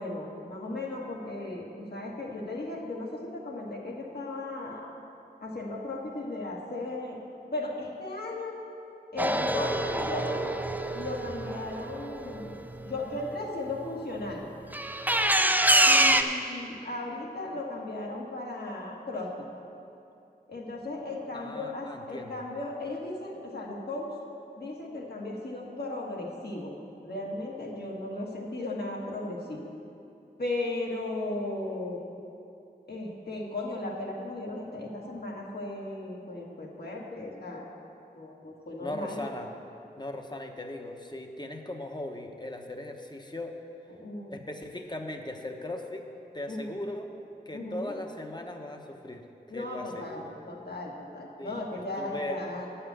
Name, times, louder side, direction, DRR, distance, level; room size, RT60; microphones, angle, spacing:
voice 1, 0.0-4.9 5.4-7.2 7.5-8.6 9.1-10.5 10.9-12.6 12.9-14.4 15.9-19.3 20.5-24.1 24.6-26.8 27.0-29.7 30.4-32.0 32.9-37.7 38.2-39.2 43.9-44.3 46.5-46.8 47.5-47.9 49.5-52.7, left 2 dB, 70° left, -3 dB, 1.9 m, -36 dB
sound 1, 9.2-12.9 14.7-16.2, right 1 dB, 10° right, 0.6 m, -25 dB
voice 2, 15.9-16.3 21.3-22.4 38.8-39.5 39.9-43.6 44.3-46.1 46.3-47.1 47.5-50.4 51.4-52.4, left 1 dB, 25° left, 4 dB, 1.0 m, -39 dB
10.5 x 5.7 x 8.3 m, 2.7 s
wide cardioid pair, 45°, 17 cm